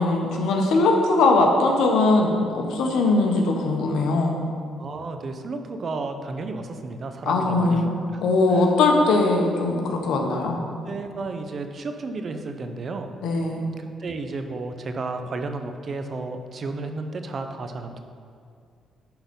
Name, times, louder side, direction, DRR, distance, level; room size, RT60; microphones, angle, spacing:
voice 1, 0.0-4.4 7.3-7.9 8.2-10.6 13.2-13.6, left 3 dB, 85° left, 2 dB, 1.1 m, -20 dB
voice 2, 4.8-8.2 8.5-8.7 10.8-13.1 13.8-18.0, right 3 dB, 45° right, 7 dB, 0.7 m, -32 dB
10.5 x 3.9 x 5.3 m, 2.2 s
cardioid pair, 90°, 0 cm